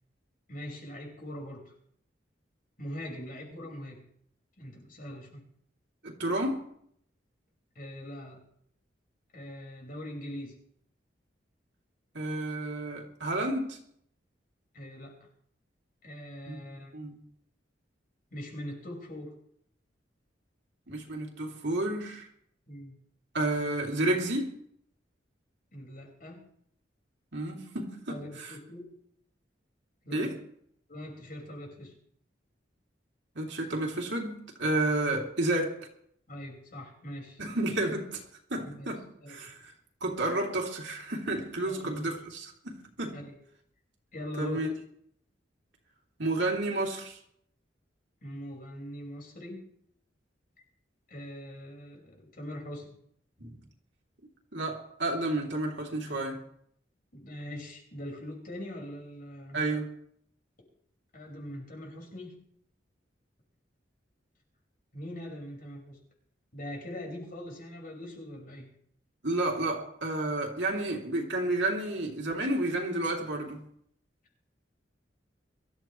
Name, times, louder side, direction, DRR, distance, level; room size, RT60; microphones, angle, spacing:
voice 1, 0.5-1.7 2.8-4.1 4.6-5.4 7.8-8.4 9.3-10.6 14.7-15.2 16.0-16.9 18.3-19.3 22.7-23.0 25.7-26.5 28.1-29.0 30.0-30.3 30.9-32.0 36.3-37.4 38.6-38.9 39.2-39.4 41.6-42.1 43.1-43.4 44.1-44.6 48.2-49.7 51.1-52.9 57.1-59.6 61.1-62.4 64.9-66.0 66.5-68.8, left 1 dB, 50° left, 5.5 m, -42 dB
voice 2, 6.0-6.7 12.1-13.8 16.5-16.6 16.9-17.2 20.9-22.3 23.3-24.6 27.3-28.5 30.1-30.4 33.3-35.8 37.4-38.2 38.5-39.7 40.0-43.2 44.4-44.7 46.2-47.2 53.4-53.6 54.5-56.4 59.5-59.9 69.2-73.7, right 2 dB, 70° right, 3.0 m, -31 dB
23.5 x 14.0 x 3.2 m
head